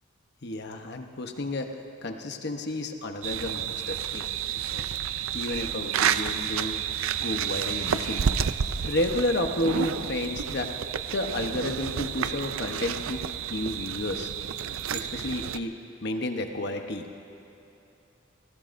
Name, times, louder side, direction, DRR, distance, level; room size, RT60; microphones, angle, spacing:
voice 1, 0.4-1.7 2.0-4.9 5.3-6.7 7.2-8.4 8.8-10.7 11.1-13.2 13.5-14.3 14.9-15.7 16.0-17.2, left 1 dB, 55° left, 5 dB, 1.0 m, -31 dB
sound 1, 3.2-15.6, right 8 dB, 90° right, 0.5 m, -30 dB
29.0 x 17.5 x 2.6 m, 3.0 s
head